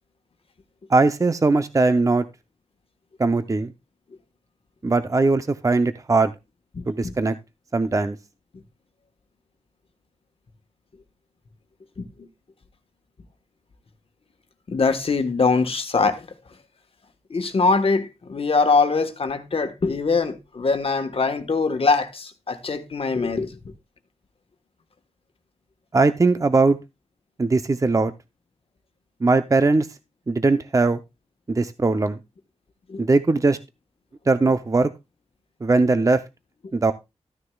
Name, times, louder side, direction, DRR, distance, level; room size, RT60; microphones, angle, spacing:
voice 1, 0.9-2.3 3.2-3.7 4.8-6.3 6.9-7.4 7.7-8.2 25.9-26.8 27.4-28.1 29.2-29.9 30.3-31.0 31.5-32.2 33.0-33.6 34.3-34.9 35.6-36.2 36.7-36.9, right 3 dB, 30° right, 0.6 m, -20 dB
voice 2, 6.7-7.1 12.0-12.1 14.7-16.3 17.3-23.6 32.9-33.1, left 4 dB, 55° left, 1.3 m, -22 dB
13.5 x 9.6 x 2.3 m
wide cardioid pair, 90°, 11 cm